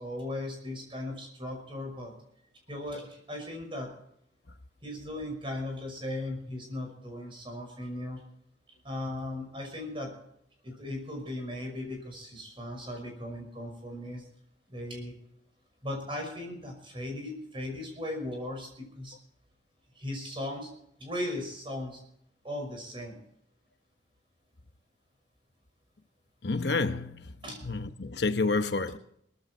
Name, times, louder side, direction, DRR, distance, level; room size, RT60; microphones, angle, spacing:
voice 1, 0.0-2.1 2.7-3.9 4.8-8.2 8.8-10.1 10.6-14.2 14.7-15.1 15.8-19.1 20.0-20.7 21.0-22.0 22.4-23.1 27.4-27.6, left 1 dB, 30° right, 5.7 m, -37 dB
voice 2, 26.4-27.2 27.6-29.0, left 3 dB, 60° left, 1.0 m, -29 dB
19.0 x 14.5 x 4.4 m
head